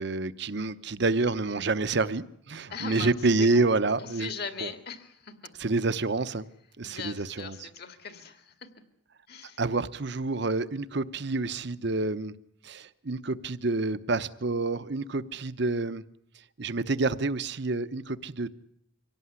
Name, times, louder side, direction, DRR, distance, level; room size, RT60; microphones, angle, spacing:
voice 1, 0.0-4.3 4.6-4.7 5.6-6.5 6.8-7.7 9.6-12.3 12.6-16.0 16.6-18.5, right 3 dB, 55° right, 14 dB, 0.9 m, -28 dB
voice 2, 2.7-3.6 4.0-5.5 6.8-8.7 9.3-9.6, left 5 dB, 50° left, 8 dB, 2.2 m, -40 dB
24.5 x 17.5 x 9.6 m, 0.75 s
head